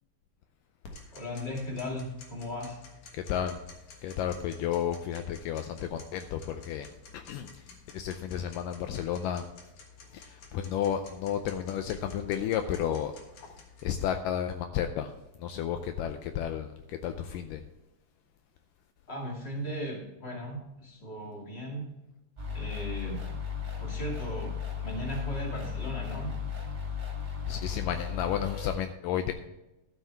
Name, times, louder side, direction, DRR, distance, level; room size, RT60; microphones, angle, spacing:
Tick-tock, 0.8-14.0, left 4 dB, 60° left, 2.6 m, -52 dB
voice 1, 1.1-2.8 19.1-21.9 22.5-23.3 23.8-24.5 24.8-26.3, equal, 20° left, -1 dB, 2.0 m, -37 dB
voice 2, 3.1-3.6 4.0-6.9 7.1-7.5 7.9-9.4 10.1-13.1 13.8-15.1 15.4-17.6 27.5-29.3, left 9 dB, 80° left, 8 dB, 2.1 m, -32 dB
sound 1, 22.4-28.8, left 7 dB, 15° right, 2.4 m, -35 dB
12.5 x 8.3 x 3.4 m, 0.96 s
omnidirectional pair, 4.1 m